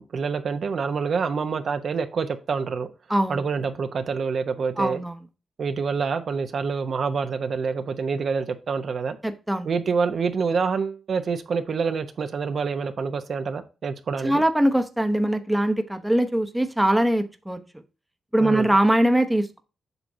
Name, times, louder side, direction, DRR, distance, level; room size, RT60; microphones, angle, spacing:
voice 1, 0.0-2.9 3.3-5.0 5.6-9.2 9.6-14.4 18.4-18.7, right 5 dB, 60° right, 0.8 m, -27 dB
voice 2, 3.1-3.4 4.8-5.2 9.2-9.7 14.2-17.6 18.3-19.6, right 1 dB, 5° right, 0.8 m, -22 dB
8.0 x 5.9 x 2.7 m
cardioid pair, 85°, 0 cm